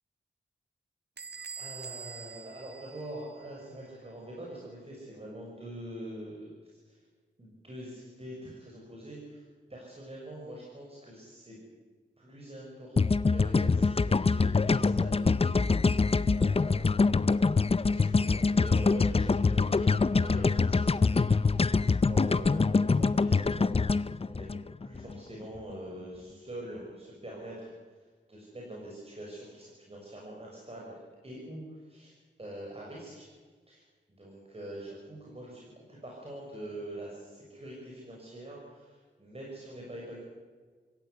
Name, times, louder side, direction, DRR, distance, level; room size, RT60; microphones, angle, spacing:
Bell / Squeak, 1.2-3.7, right 6 dB, 60° right, 1.1 m, -45 dB
voice 1, 1.6-7.0 7.4-9.4 9.7-11.6 12.2-16.9 17.9-24.5 24.8-27.7 28.3-31.0 31.2-33.2 33.7-40.2, right 1 dB, 30° right, -3 dB, 6.5 m, -44 dB
sound 1, 13.0-25.2, left 4 dB, 30° left, 0.6 m, -25 dB
26.0 x 16.0 x 8.4 m, 1.5 s
wide cardioid pair, 85°, 19 cm